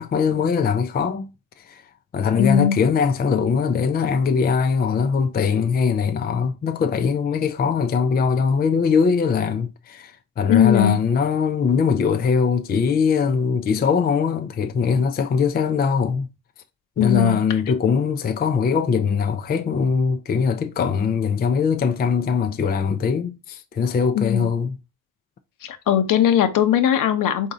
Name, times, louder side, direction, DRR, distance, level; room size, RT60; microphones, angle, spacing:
voice 1, 0.0-1.8 2.1-16.3 17.0-24.8, left 6 dB, 25° left, 0.4 m, -21 dB
voice 2, 2.4-2.8 10.5-11.0 17.0-17.4 24.1-24.5 25.6-27.5, left 10 dB, 65° left, 0.9 m, -19 dB
3.8 x 2.8 x 4.8 m
cardioid pair, 100°, 35 cm